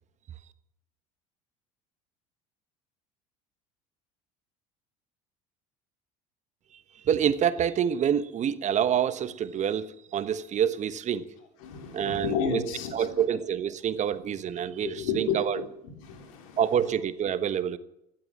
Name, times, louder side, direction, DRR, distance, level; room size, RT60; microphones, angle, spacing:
voice 1, 7.0-11.2 11.9-12.6 12.9-15.6 16.6-17.8, right 9 dB, 45° right, 13 dB, 1.2 m, -27 dB
voice 2, 11.6-13.2 14.8-15.7 16.0-16.6, left 6 dB, 80° left, 3 dB, 3.7 m, -32 dB
15.5 x 12.0 x 7.4 m, 0.81 s
hypercardioid pair, 80°, 17 cm